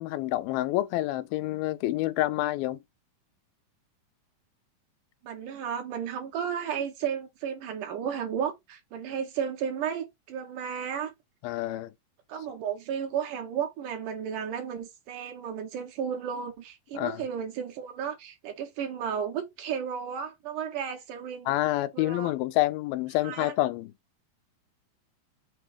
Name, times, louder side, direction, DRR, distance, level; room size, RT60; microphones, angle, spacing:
voice 1, 0.0-2.8 11.4-11.9 16.9-17.3 21.5-23.9, left 16 dB, 90° left, 2.5 m, -28 dB
voice 2, 5.2-11.1 12.3-21.5 21.9-22.3 23.2-23.5, right 8 dB, 70° right, 2.4 m, -33 dB
6.4 x 3.1 x 4.9 m
omnidirectional pair, 4.2 m